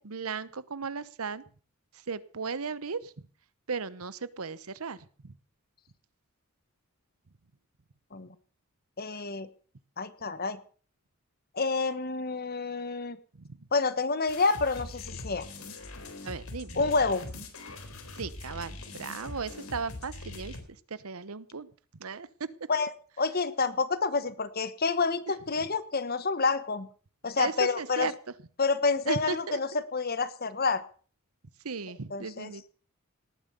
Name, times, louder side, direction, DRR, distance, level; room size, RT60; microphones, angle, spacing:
voice 1, 0.0-1.4 2.1-3.3 3.7-5.0 5.2-5.3 13.4-13.6 16.2-16.8 18.2-20.5 20.9-21.7 22.0-22.3 27.4-28.1 29.1-29.8 31.6-32.7, right 5 dB, 85° right, 17 dB, 1.0 m, -36 dB
voice 2, 9.0-9.5 10.0-10.6 11.5-13.2 13.7-15.4 16.7-17.2 22.7-22.9 23.2-26.9 27.2-28.1 28.6-30.8 32.1-32.5, left 4 dB, 45° left, 13 dB, 1.3 m, -28 dB
sound 1, 14.3-20.6, left 2 dB, 80° left, 4.1 m, -42 dB
19.0 x 9.1 x 7.0 m, 0.43 s
head